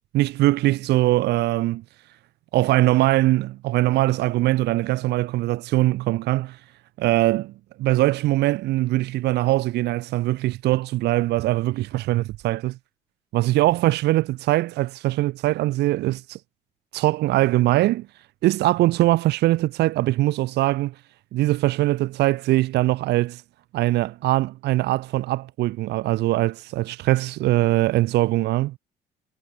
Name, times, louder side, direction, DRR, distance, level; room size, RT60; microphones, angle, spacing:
voice 1, 0.1-1.8 2.5-6.6 7.0-7.5 7.8-12.8 13.3-16.4 16.9-18.1 18.4-20.9 21.3-23.4 23.7-28.7, right 17 dB, 70° right, 0.9 m, -21 dB
cardioid pair, 115°, 18 cm